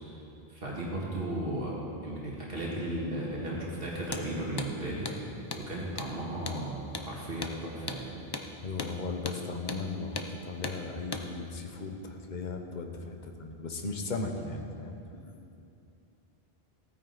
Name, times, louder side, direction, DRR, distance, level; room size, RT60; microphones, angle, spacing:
voice 1, 0.5-5.2 5.6-8.2, right 1 dB, 65° right, -5 dB, 1.9 m, -35 dB
Hammer, 4.0-4.3 4.6-4.7 5.0-5.2 5.5-5.7 6.0-6.1 6.5-6.6 6.9-7.1 7.4-7.6 7.9-8.0 8.3-8.5 8.8-8.9 9.3-9.4 9.7-9.8 10.2-10.3 10.6-10.8 11.1-11.3, left 3 dB, 30° left, 0.5 m, -37 dB
voice 2, 8.6-15.0, left 3 dB, 50° left, 4 dB, 1.0 m, -37 dB
16.0 x 9.2 x 4.0 m, 2.7 s
omnidirectional pair, 1.0 m